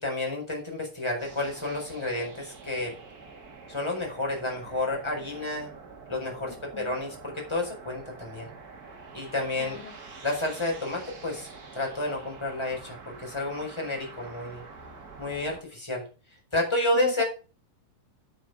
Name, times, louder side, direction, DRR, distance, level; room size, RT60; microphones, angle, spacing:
voice 1, 0.0-2.9 3.7-5.7 6.1-8.5 9.1-9.8 10.2-11.5 11.7-14.6 15.2-16.1 16.5-17.2, left 2 dB, 10° left, 0 dB, 4.4 m, -30 dB
sound 1, 1.2-15.6, right 4 dB, 35° right, 1.9 m, -46 dB
voice 2, 9.6-10.0 16.9-17.2, left 9 dB, 70° left, 5 dB, 2.7 m, -40 dB
9.3 x 7.2 x 6.6 m, 0.34 s
omnidirectional pair, 3.8 m